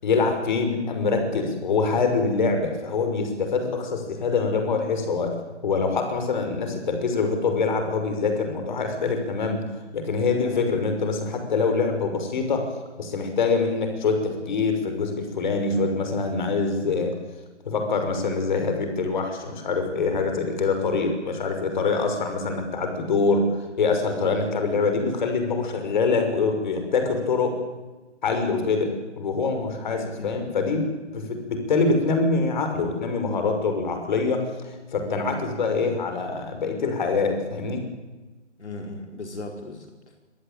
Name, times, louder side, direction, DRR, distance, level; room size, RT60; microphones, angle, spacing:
voice 1, 0.0-5.3 5.6-12.7 13.0-17.2 17.6-27.6 28.2-37.8, left 4 dB, 40° left, 5 dB, 6.1 m, -25 dB
voice 2, 29.8-30.4 38.6-40.2, left 2 dB, 70° left, 3 dB, 4.7 m, -37 dB
27.0 x 21.5 x 9.1 m, 1.2 s
figure-of-eight pair, 155°, 36 cm